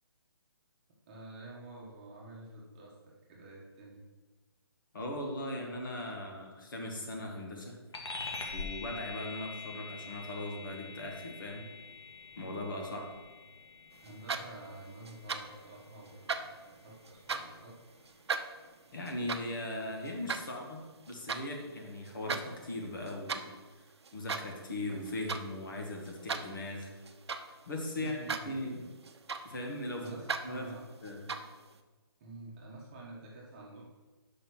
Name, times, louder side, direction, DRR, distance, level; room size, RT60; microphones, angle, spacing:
voice 1, 0.9-4.0 14.0-17.8 27.9-28.5 30.0-30.9 32.2-33.8, right 2 dB, 20° right, -4 dB, 1.2 m, -49 dB
voice 2, 4.9-7.8 8.5-11.6 12.4-13.1 18.9-20.8 21.1-26.9 27.7-28.8 29.4-30.0 30.4-30.7 31.0-31.3, left 1 dB, 50° left, 1 dB, 1.7 m, -39 dB
sound 1, 7.9-17.8, left 4 dB, 90° left, 1.9 m, -45 dB
sound 2, 14.0-14.7 15.0-15.6 16.0-17.6 18.0-21.5 21.9-22.5 22.8-23.5 24.0-24.6 24.9-25.5 25.8-27.6 28.0-28.6 28.9-29.7 30.0-30.5 31.0-31.6, right 5 dB, 80° right, 0.8 m, -37 dB
6.3 x 5.6 x 6.1 m, 1.3 s
hypercardioid pair, 175°, 14 cm